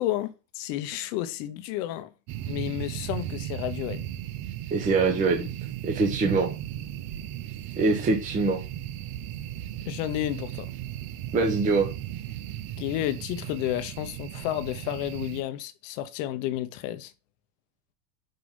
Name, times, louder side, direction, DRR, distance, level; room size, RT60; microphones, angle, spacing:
voice 1, 0.0-2.1 2.5-4.1 9.8-10.7 12.8-17.1, left 13 dB, 50° left, 0.9 m, -31 dB
sound 1, 2.3-15.4, right 12 dB, 35° right, 0.5 m, -36 dB
voice 2, 4.7-5.5 5.8-6.5 7.8-8.6 11.3-11.9, right 3 dB, 15° right, 0.9 m, -23 dB
5.8 x 5.2 x 5.4 m
supercardioid pair, 140°, 49 cm